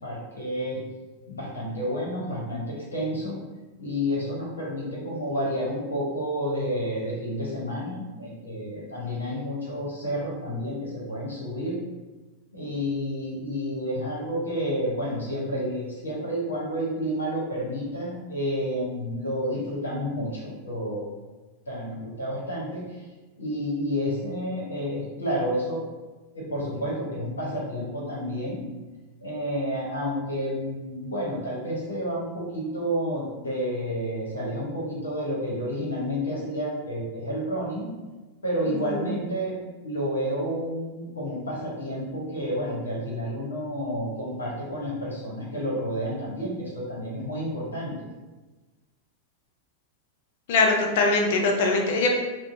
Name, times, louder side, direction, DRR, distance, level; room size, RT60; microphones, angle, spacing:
voice 1, 0.0-0.8 1.3-3.4 3.8-11.8 12.5-21.1 21.7-22.8 23.4-25.8 26.3-28.6 29.2-37.9 38.4-39.6 39.8-47.9, equal, 90° left, -5 dB, 0.8 m, -30 dB
voice 2, 38.7-39.1 50.5-52.1, left 3 dB, 65° left, 2 dB, 0.5 m, -22 dB
2.6 x 2.0 x 2.6 m, 1.2 s
hypercardioid pair, 95°, 0 cm